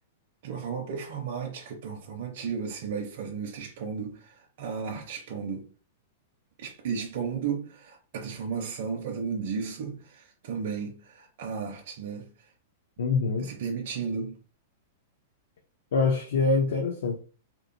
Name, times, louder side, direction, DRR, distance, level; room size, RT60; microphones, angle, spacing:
voice 1, 0.4-5.7 6.6-12.3 13.4-14.3, right 6 dB, 45° right, 0.5 m, -34 dB
voice 2, 13.0-13.5 15.9-17.2, left 4 dB, 75° left, 0.5 m, -25 dB
2.9 x 2.0 x 2.5 m
supercardioid pair, 175°, 0 cm